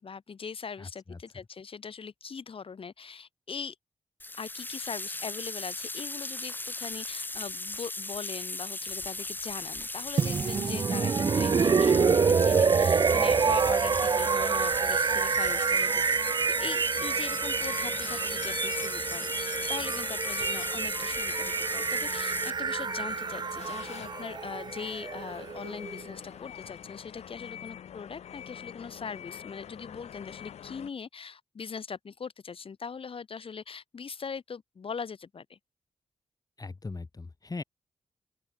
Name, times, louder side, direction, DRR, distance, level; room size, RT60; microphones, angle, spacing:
voice 1, 0.0-3.8 4.4-16.0 16.6-35.6, left 6 dB, 55° left, 2.2 m, -41 dB
voice 2, 0.8-1.2 36.6-37.6, left 3 dB, 35° left, 4.4 m, -39 dB
sound 1, 4.2-22.5, left 2 dB, 20° left, 0.8 m, -37 dB
sound 2, 10.2-26.1, right 5 dB, 40° right, 0.5 m, -27 dB
sound 3, 17.0-30.9, left 9 dB, 80° left, 0.7 m, -44 dB
open air
cardioid pair, 75°, 11 cm